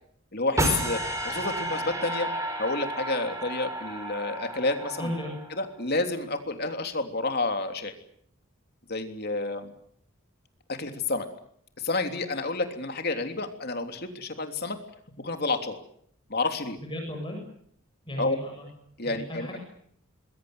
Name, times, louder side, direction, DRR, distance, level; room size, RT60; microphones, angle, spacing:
voice 1, 0.3-2.3 2.6-5.1 5.6-7.9 8.9-9.7 10.7-11.3 11.8-14.8 15.2-15.8 16.3-16.8 18.2-18.4 19.0-19.6, left 3 dB, 45° left, 6 dB, 3.3 m, -30 dB
sound 1, 0.6-5.8, right 1 dB, 15° right, 5.2 m, -32 dB
voice 2, 5.0-5.4 16.8-17.4 18.0-18.7 19.0-19.6, left 1 dB, 20° left, 2 dB, 7.6 m, -35 dB
26.0 x 22.0 x 8.0 m, 0.66 s
head